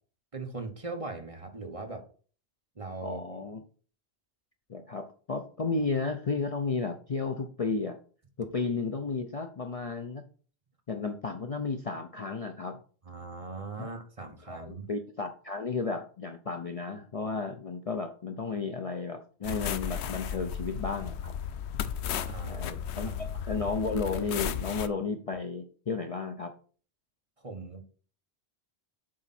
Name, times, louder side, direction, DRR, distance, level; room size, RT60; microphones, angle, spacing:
voice 1, 0.3-2.0 2.8-3.2 13.0-14.9 22.3-22.6 23.0-23.4 27.4-27.8, right 3 dB, 30° right, 5 dB, 1.1 m, -40 dB
voice 2, 3.0-3.6 4.7-8.0 8.4-10.2 10.9-12.8 13.8-13.9 14.5-21.3 22.5-26.5, left 4 dB, 40° left, 5 dB, 0.6 m, -33 dB
sound 1, 19.4-24.9, left 8 dB, 80° left, 0.9 m, -34 dB
7.6 x 5.0 x 4.2 m, 0.41 s
omnidirectional pair, 1.1 m